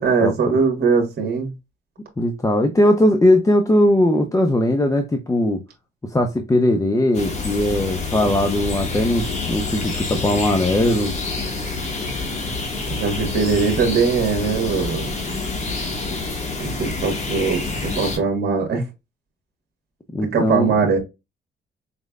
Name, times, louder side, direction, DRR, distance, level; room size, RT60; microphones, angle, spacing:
voice 1, 0.0-1.5 12.9-15.1 16.6-18.8 20.3-21.0, right 5 dB, 55° right, 1.5 m, -21 dB
voice 2, 2.2-5.6 6.0-11.1 16.8-16.9 17.7-17.8 20.1-20.7, left 1 dB, 15° left, 0.7 m, -19 dB
sound 1, 7.1-18.2, left 3 dB, 35° left, 1.7 m, -27 dB
5.1 x 3.2 x 2.4 m
cardioid pair, 90°, 20 cm